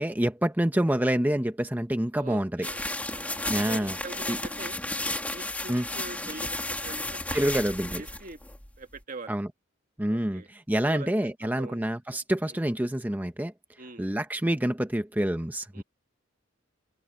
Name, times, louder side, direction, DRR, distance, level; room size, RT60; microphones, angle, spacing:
voice 1, 0.0-2.7 3.5-4.0 4.3-4.4 5.7-5.8 7.3-8.0 9.3-9.5 10.0-13.5 14.0-15.8, right 1 dB, 10° right, 0.8 m, -27 dB
voice 2, 2.2-4.8 5.3-7.5 7.8-8.4 8.8-9.4 10.1-10.5 10.8-11.9 12.4-12.6 13.8-14.1 15.7-15.8, right 3 dB, 45° right, 1.4 m, -43 dB
sound 1, 2.6-9.0, left 2 dB, 10° left, 2.4 m, -33 dB
open air
head